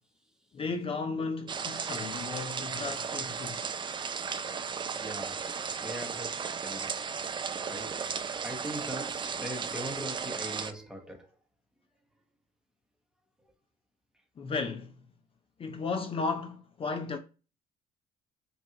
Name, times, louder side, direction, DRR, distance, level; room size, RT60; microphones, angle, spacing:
voice 1, 0.5-3.6 14.4-14.9 15.6-17.2, left 4 dB, 35° left, 0.5 m, -34 dB
sound 1, 1.5-10.7, right 6 dB, 30° right, 0.4 m, -35 dB
voice 2, 5.0-7.0 7.7-8.1 8.4-11.3, equal, 5° right, 0.9 m, -41 dB
5.3 x 2.4 x 2.8 m
cardioid pair, 110°, 17 cm